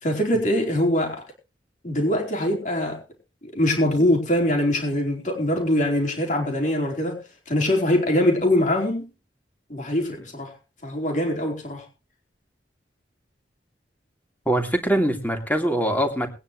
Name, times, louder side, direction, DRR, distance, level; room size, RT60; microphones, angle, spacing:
voice 1, 0.0-1.2 1.8-3.0 3.5-9.1 9.7-10.5 10.8-11.8, left 1 dB, 45° left, 1 dB, 4.6 m, -23 dB
voice 2, 14.4-16.3, right 1 dB, 10° left, 4 dB, 2.9 m, -23 dB
21.5 x 9.9 x 3.2 m, 0.30 s
head